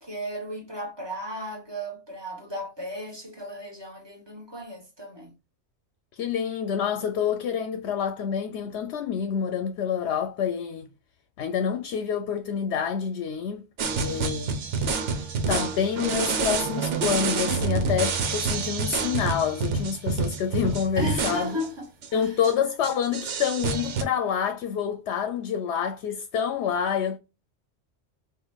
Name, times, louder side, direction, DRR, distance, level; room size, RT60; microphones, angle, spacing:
voice 1, 0.0-5.3 21.0-22.3, equal, 25° right, 1.1 m, -35 dB
voice 2, 6.1-10.9 11.4-13.6 13.9-14.6 15.5-21.6 22.1-27.2, left 7 dB, 70° left, 0.8 m, -27 dB
sound 1, 13.8-21.7 22.0-22.1 22.4-22.5 22.8-24.0, right 4 dB, 80° right, 1.1 m, -28 dB
5.0 x 2.4 x 2.3 m
omnidirectional pair, 1.2 m